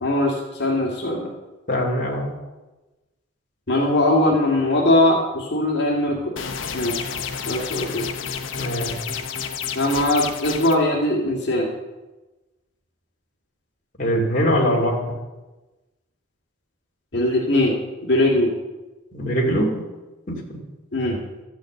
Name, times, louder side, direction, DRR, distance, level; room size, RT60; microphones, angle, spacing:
voice 1, 0.0-1.3 3.7-6.3 6.7-7.1 7.4-8.1 9.8-11.7 17.1-17.8 18.1-18.5 20.9-21.2, left 1 dB, 60° left, -3 dB, 2.2 m, -20 dB
voice 2, 1.7-2.3 8.6-8.9 14.0-15.0 19.1-19.9 20.3-20.6, equal, 40° left, -2 dB, 2.4 m, -22 dB
sound 1, 6.4-10.7, left 7 dB, 90° left, 0.9 m, -30 dB
13.0 x 6.3 x 7.8 m, 1.1 s
head